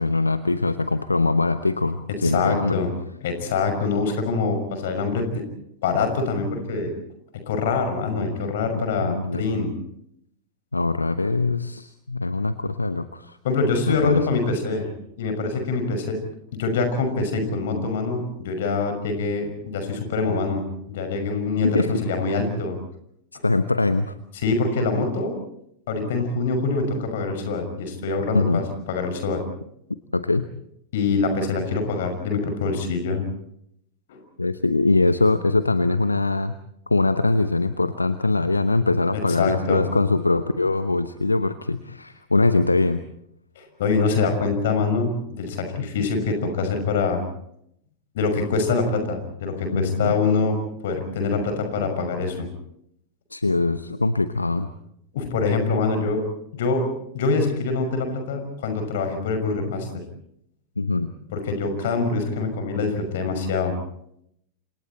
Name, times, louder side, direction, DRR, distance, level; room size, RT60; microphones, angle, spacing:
voice 1, 0.0-2.8 9.0-9.4 10.7-13.4 13.9-14.3 21.7-21.9 23.4-24.1 28.3-28.6 30.1-30.4 34.4-36.5 36.9-43.0 49.7-50.2 53.3-54.7 60.8-61.1, left 3 dB, 80° left, 12 dB, 0.9 m, -22 dB
voice 2, 2.2-2.9 3.2-5.4 5.8-6.9 7.3-9.7 13.4-14.9 15.2-16.2 16.5-22.8 24.3-25.3 25.9-29.4 30.9-33.2 34.1-34.2 39.1-39.8 43.6-47.2 48.1-50.6 50.8-52.5 55.1-56.2 56.5-56.8 57.1-60.0 61.3-63.7, left 4 dB, 55° left, 7 dB, 6.1 m, -24 dB
30.0 x 27.0 x 4.4 m, 0.73 s
figure-of-eight pair, 90°, 0 cm